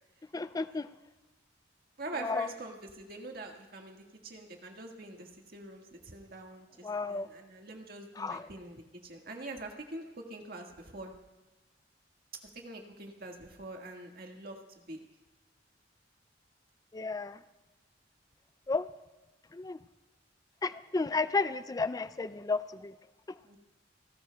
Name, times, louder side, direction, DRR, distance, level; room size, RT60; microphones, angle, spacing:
voice 1, 0.3-0.9 2.2-2.5 6.8-7.3 8.2-8.5 16.9-17.4 18.7-18.9 19.5-19.8 20.6-22.9, left 3 dB, 20° left, 0.4 m, -32 dB
voice 2, 2.0-11.1 12.5-15.0 23.4-23.6, right 2 dB, 55° right, 1.7 m, -45 dB
29.5 x 12.5 x 2.3 m
head